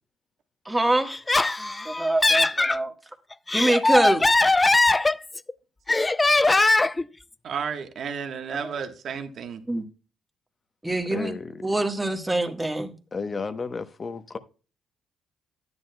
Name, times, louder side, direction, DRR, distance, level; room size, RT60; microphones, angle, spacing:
voice 1, 0.6-1.2 1.8-2.9 3.5-4.2 9.7-9.8 10.8-11.3 11.6-12.9, right 1 dB, 10° right, 1.4 m, -24 dB
Laughter, 1.1-2.8 3.3-5.5 5.9-7.0, left 2 dB, 20° left, 0.4 m, -20 dB
voice 2, 7.4-9.6, right 6 dB, 65° right, 1.2 m, -32 dB
voice 3, 11.0-11.7 13.1-14.4, left 4 dB, 35° left, 0.9 m, -33 dB
10.5 x 9.7 x 2.2 m
cardioid pair, 90°, 0 cm